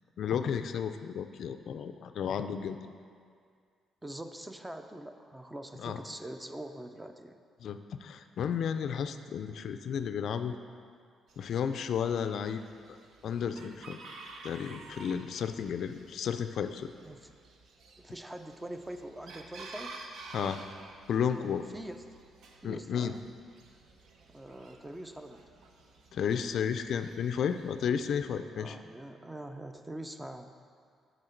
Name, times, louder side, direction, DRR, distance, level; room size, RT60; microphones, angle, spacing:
voice 1, 0.2-2.8 5.8-6.0 7.6-10.6 11.4-12.6 12.9-13.0 13.2-14.0 14.4-16.9 20.3-20.6 21.1-21.6 22.6-23.1 26.1-28.8, left 7 dB, 65° left, 9 dB, 0.3 m, -32 dB
voice 2, 4.0-7.4 17.0-17.3 18.0-20.0 21.7-22.0 22.6-23.2 24.3-25.6 28.1-28.2 28.5-30.6, right 1 dB, 15° right, 7 dB, 0.4 m, -44 dB
Chicken rooster, 11.3-27.9, right 3 dB, 70° right, 0.7 m, -52 dB
6.6 x 6.3 x 4.4 m, 2.2 s
cardioid pair, 90°, 0 cm